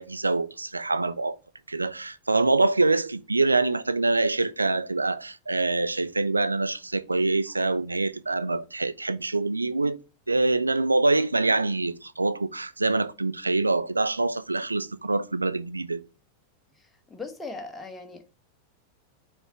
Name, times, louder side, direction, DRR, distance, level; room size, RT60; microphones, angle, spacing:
voice 1, 0.0-1.4 1.7-10.0 10.3-16.0, right 3 dB, 80° right, 0.4 m, -25 dB
voice 2, 16.8-18.3, left 3 dB, 10° left, 1.1 m, -39 dB
6.9 x 3.5 x 4.1 m
figure-of-eight pair, 90°, 0 cm